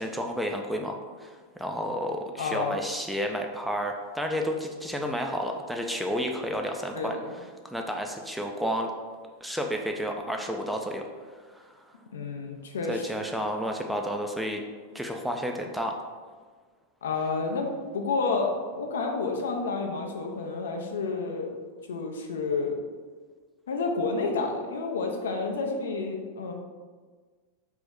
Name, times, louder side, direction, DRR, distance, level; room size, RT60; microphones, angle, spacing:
voice 1, 0.0-7.2 7.6-8.9 9.4-11.0 11.5-11.8 12.9-14.6 14.9-16.0, equal, ahead, 2 dB, 0.4 m, -31 dB
voice 2, 2.4-2.8 6.9-7.2 12.1-13.3 17.0-21.5 21.9-22.8 23.7-26.5, left 4 dB, 65° left, 3 dB, 0.5 m, -30 dB
3.5 x 2.9 x 3.5 m, 1.5 s
figure-of-eight pair, 90°, 0 cm